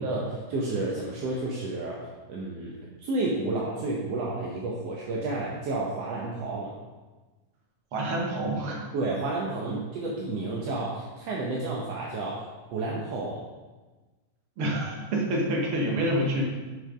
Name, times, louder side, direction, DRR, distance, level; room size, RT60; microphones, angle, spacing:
voice 1, 0.0-6.7 8.9-12.4 12.7-13.4, right 2 dB, 65° right, -3 dB, 1.7 m, -31 dB
voice 2, 7.9-8.8 9.7-9.8 14.6-16.5, right 1 dB, 50° right, -1 dB, 2.0 m, -27 dB
8.0 x 6.6 x 5.1 m, 1.3 s
omnidirectional pair, 3.9 m